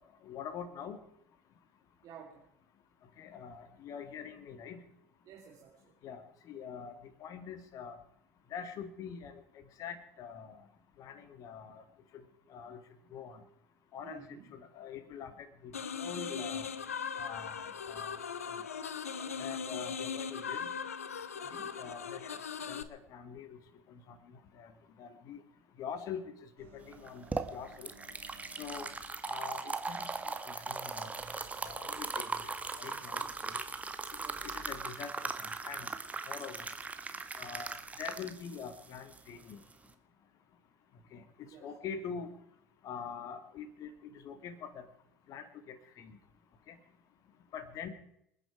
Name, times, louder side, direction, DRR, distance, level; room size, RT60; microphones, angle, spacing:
voice 1, 0.2-1.0 3.2-4.8 6.0-6.9 7.2-8.0 8.5-9.4 9.8-10.6 11.0-11.8 12.5-12.8 13.1-13.4 13.9-16.7 17.2-18.2 18.5-18.6 19.4-20.7 21.5-22.4 22.7-23.6 23.9-24.2 24.6-24.7 25.0-25.4 25.8-26.2 26.6-27.3 27.5-27.9 28.6-28.9 29.3-31.1 31.6-32.5 32.8-33.6 34.4-35.9 36.3-36.7 37.4-37.7 38.0-39.6 41.1-42.3 42.8-44.9 45.3-46.2 46.7-46.8 47.5-47.9, left 7 dB, 50° left, 10 dB, 2.4 m, -44 dB
voice 2, 2.0-2.4 5.2-5.9 14.0-14.5 19.2-19.6 21.3-21.7 33.1-33.3 34.2-34.5 41.5-41.9, right 8 dB, 45° right, -1 dB, 3.1 m, -53 dB
sound 1, 15.7-22.8, left 6 dB, 80° left, 0.9 m, -39 dB
sound 2, 26.6-29.1 31.1-34.8, equal, 80° right, 6.9 m, -59 dB
sound 3, 26.9-39.9, right 4 dB, 20° right, 1.8 m, -39 dB
26.5 x 10.5 x 4.7 m, 0.76 s
figure-of-eight pair, 65°, 8 cm